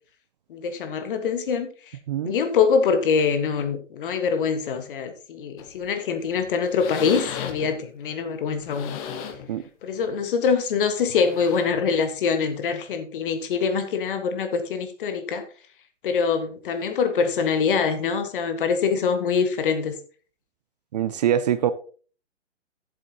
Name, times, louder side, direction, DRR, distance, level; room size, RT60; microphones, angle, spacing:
voice 1, 0.5-1.7 2.2-8.9 9.8-15.4 16.0-19.9, left 6 dB, 45° left, 8 dB, 1.6 m, -24 dB
sound 1, 5.6-5.9 6.3-6.4 6.7-7.8 8.5-9.5 10.0-10.2 11.1-11.9 12.9-13.0, left 8 dB, 30° left, 1.2 m, -36 dB
voice 2, 20.9-21.7, right 10 dB, 35° right, 13 dB, 0.5 m, -23 dB
13.5 x 7.8 x 2.9 m, 0.41 s
figure-of-eight pair, 125°, 35 cm